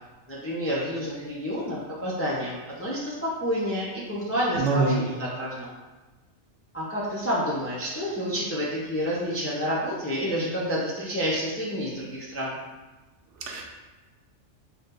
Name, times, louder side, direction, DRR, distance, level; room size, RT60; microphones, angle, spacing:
voice 1, 0.3-5.7 6.7-12.6, equal, 25° left, -6 dB, 0.3 m, -29 dB
voice 2, 4.6-5.0 13.4-13.6, right 3 dB, 75° right, 0 dB, 0.9 m, -24 dB
2.8 x 2.7 x 3.6 m, 1.2 s
omnidirectional pair, 1.2 m